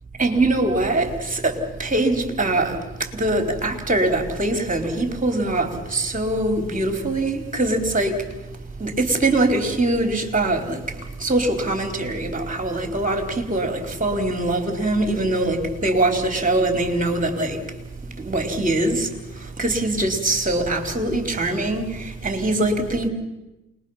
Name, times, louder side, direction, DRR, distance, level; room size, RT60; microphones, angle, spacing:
voice 1, 0.2-8.2 8.8-10.8 11.2-17.6 18.2-19.1 19.6-23.1, right 2 dB, 20° right, 4.3 m, -22 dB
28.5 x 21.0 x 5.8 m
hypercardioid pair, 60°, 41 cm